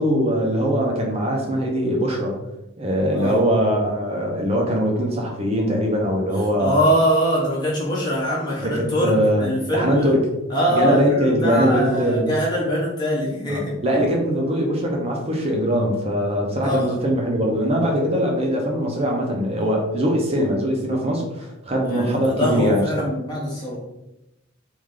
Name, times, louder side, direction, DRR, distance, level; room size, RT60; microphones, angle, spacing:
voice 1, 0.0-2.3 2.8-6.8 8.6-10.3 10.7-12.3 13.5-22.8, equal, 30° right, 0 dB, 0.7 m, -21 dB
voice 2, 6.6-10.1 10.5-13.7 16.6-16.9 21.8-23.8, equal, 20° left, -6 dB, 0.8 m, -23 dB
3.2 x 2.6 x 3.7 m, 0.93 s
head